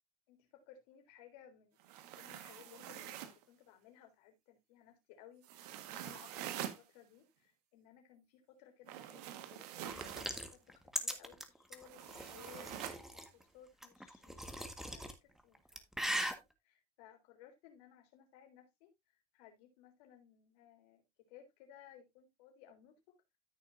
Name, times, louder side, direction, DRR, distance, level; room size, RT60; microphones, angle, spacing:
voice 1, 0.3-12.9 13.1-18.9 19.3-21.0 21.3-23.2, left 9 dB, 80° left, 3.6 m, -60 dB
sound 1, 1.8-3.4 5.4-6.8 8.8-10.3 11.9-13.0, right 11 dB, 85° right, 1.6 m, -46 dB
sound 2, 9.9-13.3 13.8-15.1 15.6-16.4, equal, ahead, 1.6 m, -40 dB
14.0 x 6.4 x 2.6 m
supercardioid pair, 105°, 20 cm